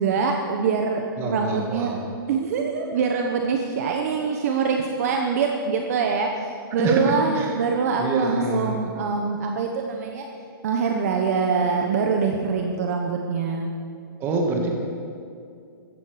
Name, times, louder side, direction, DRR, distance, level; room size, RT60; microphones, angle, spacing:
voice 1, 0.0-1.9 2.3-10.3 10.6-13.7, right 5 dB, 40° right, 3 dB, 1.1 m, -24 dB
voice 2, 1.2-2.1 6.8-7.5 8.0-8.9 14.2-14.8, right 2 dB, 20° right, 1 dB, 1.8 m, -26 dB
15.0 x 14.5 x 5.0 m, 2.4 s
hypercardioid pair, 165°, 12 cm